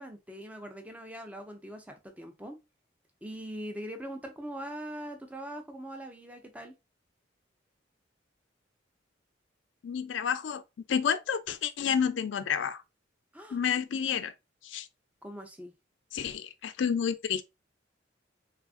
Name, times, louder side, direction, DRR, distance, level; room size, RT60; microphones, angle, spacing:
voice 1, 0.0-2.6 3.2-6.7 13.3-13.6 15.2-15.7, right 1 dB, 10° right, 0.5 m, -42 dB
voice 2, 9.8-10.6 10.9-12.8 13.5-14.3 14.6-14.9 16.1-17.4, left 7 dB, 75° left, 0.4 m, -30 dB
3.3 x 2.4 x 2.4 m
head